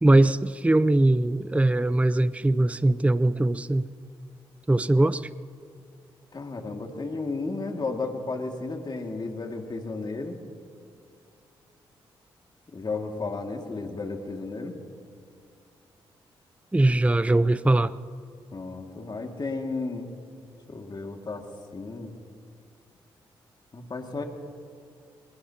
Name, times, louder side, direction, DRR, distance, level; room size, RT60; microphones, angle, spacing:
voice 1, 0.0-3.9 4.7-5.3 16.7-17.9, right 2 dB, 10° right, 16 dB, 0.5 m, -21 dB
voice 2, 6.3-10.4 12.7-14.7 18.5-20.1 20.7-21.4 21.7-22.1 23.7-24.2, left 3 dB, 40° left, 3 dB, 2.2 m, -33 dB
23.0 x 21.5 x 2.9 m, 2.5 s
supercardioid pair, 45°, 11 cm